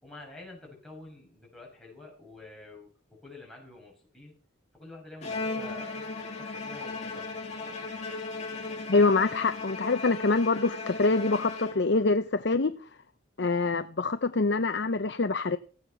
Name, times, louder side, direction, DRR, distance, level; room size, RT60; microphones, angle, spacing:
voice 1, 0.0-4.4 4.7-7.9, left 2 dB, ahead, 7.1 m, -48 dB
Bowed string instrument, 5.2-12.2, left 3 dB, 35° left, 3.0 m, -37 dB
voice 2, 8.9-12.7 13.4-15.6, left 3 dB, 60° left, 0.7 m, -25 dB
15.5 x 9.4 x 6.1 m
head